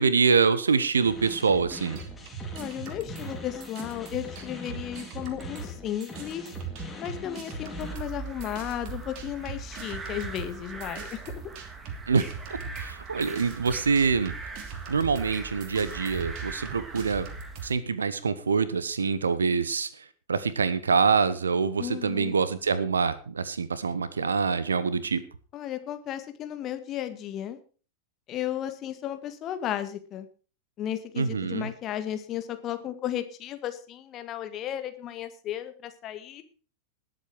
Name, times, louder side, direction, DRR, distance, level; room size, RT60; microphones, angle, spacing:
voice 1, 0.0-2.0 12.1-12.2 12.8-14.3 14.9-17.3 17.6-19.9 20.3-25.2 31.2-31.7, right 5 dB, 70° right, 16 dB, 1.1 m, -25 dB
sound 1, 1.0-7.9, left 3 dB, 10° left, 3.7 m, -42 dB
sound 2, 1.9-5.7 6.0-17.7, right 6 dB, 45° right, 2.8 m, -41 dB
voice 2, 2.5-6.5 7.0-11.4 21.8-22.4 25.5-27.6 28.3-30.3 30.8-36.4, left 11 dB, 35° left, 9 dB, 1.8 m, -34 dB
sound 3, 7.8-17.7, right 4 dB, 15° right, 2.2 m, -41 dB
20.0 x 8.0 x 4.8 m, 0.38 s
figure-of-eight pair, 90°, 0 cm